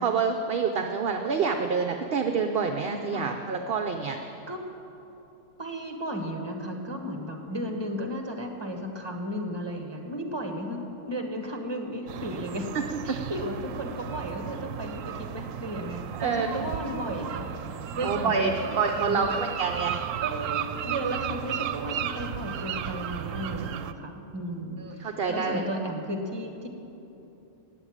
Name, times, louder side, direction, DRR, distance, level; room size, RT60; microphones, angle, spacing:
voice 1, 0.0-4.2 12.7-13.2 16.1-16.7 18.0-18.5 18.8-20.0 24.8-25.7, right 5 dB, 50° right, 5 dB, 0.9 m, -27 dB
voice 2, 5.6-12.7 13.0-17.5 17.9-19.3 20.2-26.7, equal, 20° right, 3 dB, 1.6 m, -34 dB
sound 1, 12.1-23.9, right 9 dB, 80° right, 1.0 m, -34 dB
14.5 x 9.2 x 8.9 m, 2.9 s
omnidirectional pair, 1.4 m